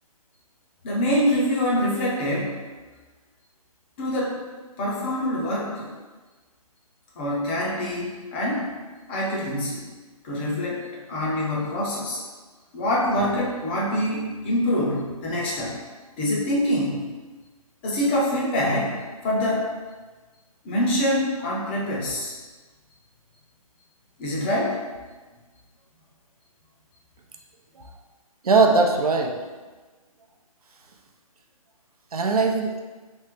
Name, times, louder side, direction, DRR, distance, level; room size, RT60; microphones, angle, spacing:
voice 1, 0.8-2.6 4.0-4.4 4.8-5.9 7.2-8.7 9.1-9.8 10.2-12.2 12.7-15.8 16.2-17.1 17.8-19.7 20.6-22.3 24.2-24.8, left 1 dB, 20° left, -4 dB, 0.5 m, -25 dB
voice 2, 28.4-29.4 32.1-32.8, right 4 dB, 80° right, 2 dB, 0.6 m, -20 dB
3.1 x 2.8 x 3.5 m, 1.3 s
hypercardioid pair, 150°, 19 cm